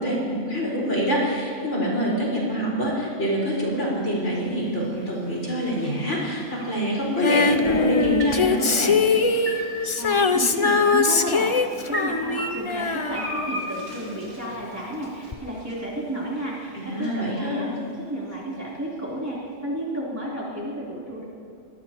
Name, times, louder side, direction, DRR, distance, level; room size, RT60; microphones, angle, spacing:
voice 1, 0.0-9.0 16.7-17.6, equal, 60° left, -5 dB, 5.1 m, -25 dB
sound 1, 3.1-19.3, right 1 dB, 40° right, 4.0 m, -39 dB
Female singing, 7.2-14.2 15.3-15.4, left 4 dB, 40° left, 0.4 m, -22 dB
voice 2, 10.0-17.8 18.1-21.3, right 1 dB, 10° right, -7 dB, 3.5 m, -32 dB
24.0 x 19.0 x 3.0 m, 2.6 s
omnidirectional pair, 1.4 m